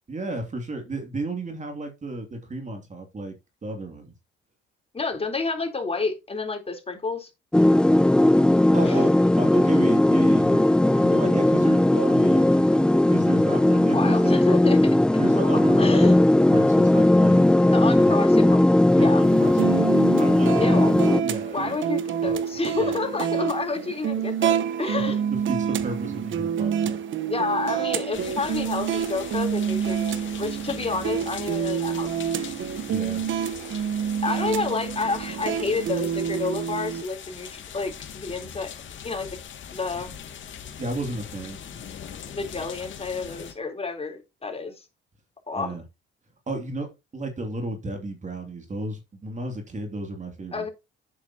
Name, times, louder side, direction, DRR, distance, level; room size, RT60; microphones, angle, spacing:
voice 1, 0.1-3.3 3.6-4.1 8.7-10.6 11.0-14.3 15.2-17.6 18.0-18.2 18.9-20.9 21.2-21.8 22.2-22.3 22.7-23.1 24.9-27.0 32.9-33.2 40.8-41.8 45.5-45.8 46.5-50.6, right 2 dB, 35° right, 2.8 m, -33 dB
voice 2, 4.9-7.3 8.8-9.0 13.9-14.8 15.3-15.5 15.8-16.2 17.7-18.7 19.0-19.2 20.6-20.9 21.5-25.2 27.2-32.1 32.4-32.5 34.2-38.7 39.0-39.3 39.7-40.2 42.3-44.8 45.5-45.8 50.5-50.7, left 4 dB, 30° left, 3.8 m, -29 dB
sound 1, 7.5-21.2, left 1 dB, 5° left, 0.5 m, -18 dB
sound 2, 19.2-37.0, right 8 dB, 65° right, 1.2 m, -28 dB
sound 3, 28.1-43.5, left 8 dB, 65° left, 2.3 m, -41 dB
10.5 x 8.3 x 2.9 m
cardioid pair, 80°, 21 cm